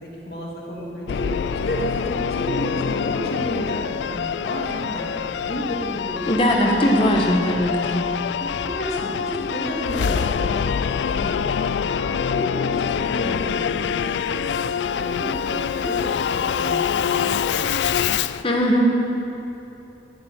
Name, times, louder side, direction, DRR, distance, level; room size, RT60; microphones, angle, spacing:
voice 1, 0.0-6.3 6.6-7.1 8.3-10.7 11.1-17.9, equal, 60° left, -4 dB, 2.8 m, -32 dB
Singing / Musical instrument, 1.1-18.4, left 7 dB, 80° left, 0.3 m, -25 dB
voice 2, 6.3-8.1 18.4-19.0, equal, 30° left, 0 dB, 1.5 m, -19 dB
13.0 x 7.3 x 9.3 m, 3.0 s
head